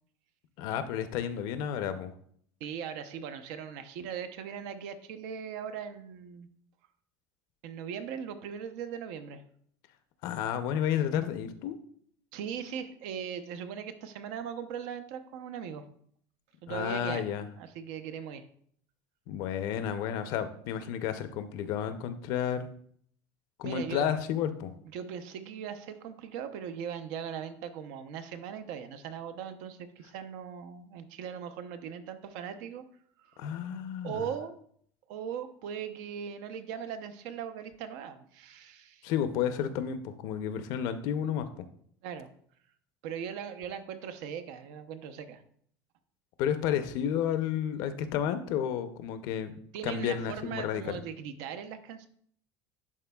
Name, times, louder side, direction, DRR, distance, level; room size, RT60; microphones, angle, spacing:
voice 1, 0.6-2.1 10.2-11.8 16.7-17.5 19.3-22.7 23.6-24.7 33.4-34.3 39.0-41.6 46.4-49.5 49.8-51.0, left 9 dB, 60° left, 10 dB, 0.6 m, -31 dB
voice 2, 2.6-6.5 7.6-9.4 12.3-15.9 16.6-17.3 17.6-18.4 23.6-24.1 24.9-32.8 33.2-33.5 34.0-34.6 35.1-39.0 42.0-42.3 43.0-45.4 49.7-52.1, right 8 dB, 70° right, 10 dB, 0.6 m, -39 dB
11.0 x 4.1 x 2.3 m, 0.62 s
cardioid pair, 165°, 8 cm